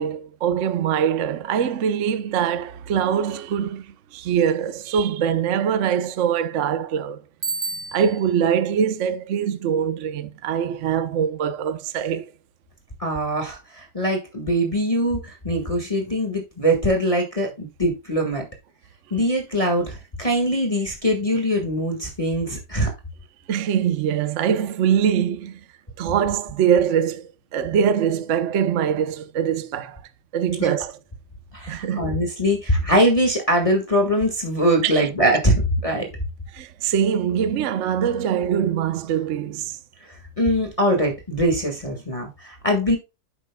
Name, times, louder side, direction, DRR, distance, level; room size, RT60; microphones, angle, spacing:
voice 1, 0.0-7.2 7.9-12.3 23.5-25.6 26.0-30.0 30.3-31.0 31.7-32.2 34.8-35.1 36.5-39.8, right 8 dB, 55° right, 0.9 m, -23 dB
Bicycle bell, 7.4-8.4, right 4 dB, 30° right, 1.6 m, -30 dB
voice 2, 13.0-18.5 19.1-22.9 30.6-30.7 31.5-36.1 40.4-43.0, equal, 20° left, 1.6 m, -22 dB
10.0 x 7.9 x 2.2 m
omnidirectional pair, 1.9 m